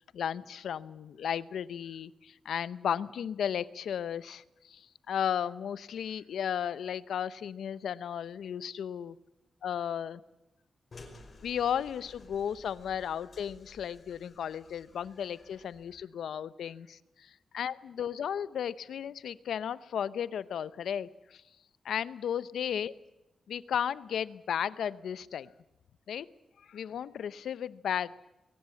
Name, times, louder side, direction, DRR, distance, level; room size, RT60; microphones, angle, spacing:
voice 1, 0.1-9.2 9.6-10.2 11.4-21.4 21.8-22.9 23.5-25.5 26.1-26.3 26.6-28.1, left 8 dB, 90° left, 16 dB, 0.8 m, -34 dB
sound 1, 10.9-16.0, left 2 dB, 45° left, 5.0 m, -54 dB
21.5 x 18.5 x 8.4 m, 0.97 s
cardioid pair, 105°, 0 cm